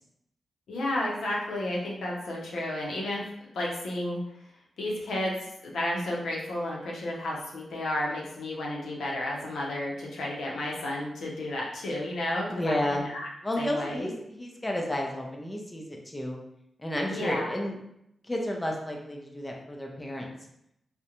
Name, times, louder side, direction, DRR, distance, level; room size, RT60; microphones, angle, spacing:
voice 1, 0.7-3.2 3.5-4.2 4.8-13.3 13.6-14.1 17.1-17.6, left 1 dB, 85° left, -3 dB, 0.6 m, -32 dB
voice 2, 12.5-13.0 13.4-16.4 16.8-17.8 18.2-20.3, left 1 dB, 15° left, 0 dB, 0.4 m, -31 dB
2.4 x 2.1 x 2.8 m, 0.79 s
cardioid pair, 75°, 0 cm